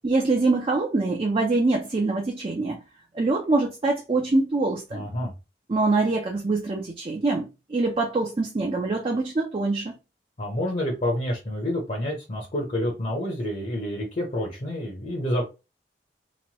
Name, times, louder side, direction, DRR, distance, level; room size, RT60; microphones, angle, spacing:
voice 1, 0.0-2.8 3.1-5.1 5.7-9.9, right 3 dB, 30° right, 0.4 m, -24 dB
voice 2, 4.9-5.3 10.4-15.5, left 1 dB, 45° left, 0.7 m, -28 dB
3.0 x 2.1 x 2.8 m
head